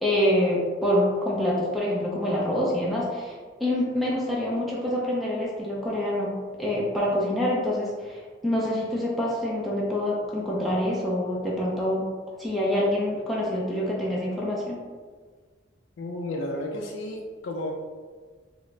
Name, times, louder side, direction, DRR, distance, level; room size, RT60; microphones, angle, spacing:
voice 1, 0.0-3.3 3.6-12.0 12.4-14.8, left 1 dB, ahead, -6 dB, 0.4 m, -26 dB
voice 2, 16.0-17.7, left 1 dB, 85° left, 0 dB, 0.4 m, -32 dB
3.6 x 2.0 x 3.2 m, 1.5 s
head